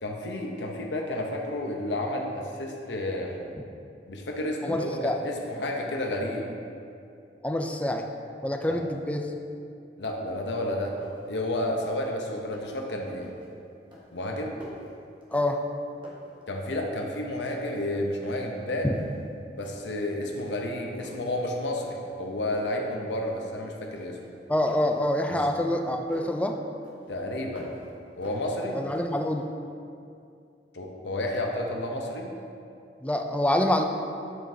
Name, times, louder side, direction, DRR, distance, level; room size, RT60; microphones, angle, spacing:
voice 1, 0.0-3.4 4.1-6.5 8.7-8.8 10.0-11.0 11.3-13.3 14.1-14.5 16.5-18.9 19.5-24.2 27.1-27.7 28.2-28.8 30.7-32.3, left 1 dB, 85° left, 1 dB, 0.8 m, -31 dB
voice 2, 4.6-5.2 7.4-8.1 8.4-9.3 15.3-15.6 18.8-19.0 24.5-26.6 28.7-29.5 33.0-33.8, left 1 dB, 10° left, 4 dB, 0.4 m, -26 dB
sound 1, 11.0-11.4 11.7-12.1 12.4-12.9 13.2-13.5 13.9-15.7 16.0-17.1 17.4-18.5 18.9-19.2 19.6-20.0 20.4-21.3 21.8-22.2 22.5-23.6 23.9-26.4 26.8-27.9 28.2-29.3, equal, 30° right, 1.3 m, -50 dB
8.0 x 7.5 x 2.7 m, 2.5 s
head